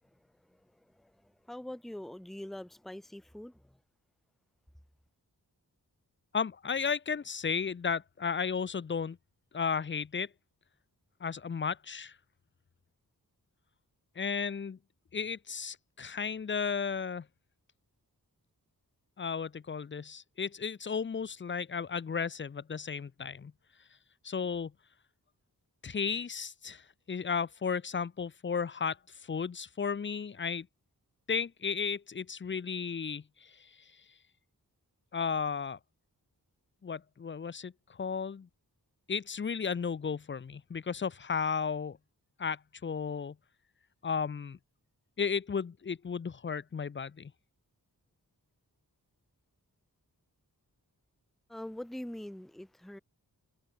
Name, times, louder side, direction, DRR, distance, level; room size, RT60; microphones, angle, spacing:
voice 1, 0.0-3.8 51.5-53.0, left 1 dB, ahead, 1.1 m, -44 dB
voice 2, 6.3-9.2 9.5-10.3 11.2-12.2 14.2-14.8 15.1-17.3 19.2-23.5 24.2-24.7 25.8-30.7 31.3-33.7 35.1-35.8 36.8-38.5 39.1-42.0 42.4-43.4 44.0-44.6 45.2-47.3, left 6 dB, 30° left, 0.5 m, -34 dB
cardioid pair, 50°, 38 cm